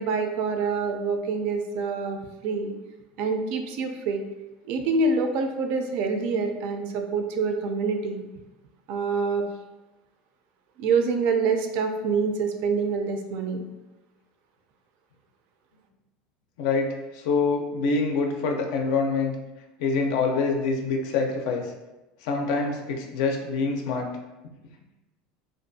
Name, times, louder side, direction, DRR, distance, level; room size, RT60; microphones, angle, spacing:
voice 1, 0.0-2.7 3.2-4.2 4.7-8.2 8.9-9.5 10.8-13.7, right 4 dB, 60° right, 5 dB, 0.3 m, -26 dB
voice 2, 17.1-19.4 19.8-21.7 22.2-24.1, left 4 dB, 75° left, 3 dB, 0.4 m, -25 dB
2.4 x 2.2 x 2.6 m, 1.0 s
supercardioid pair, 135°, 3 cm